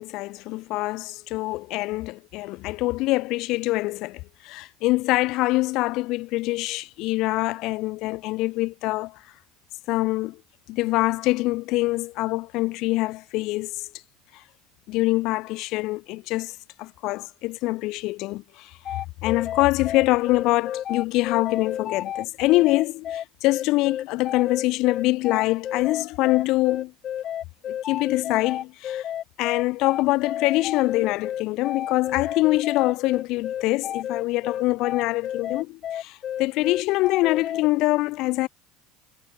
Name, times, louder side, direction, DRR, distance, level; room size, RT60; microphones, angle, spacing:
voice 1, 0.0-9.2 9.9-10.4 10.7-13.9 14.3-14.4 14.9-26.9 27.7-29.0 29.4-38.5, left 20 dB, 60° left, 0.7 m, -24 dB
sound 1, 18.9-37.7, left 10 dB, 40° left, 1.0 m, -31 dB
supercardioid pair, 130°, 0 cm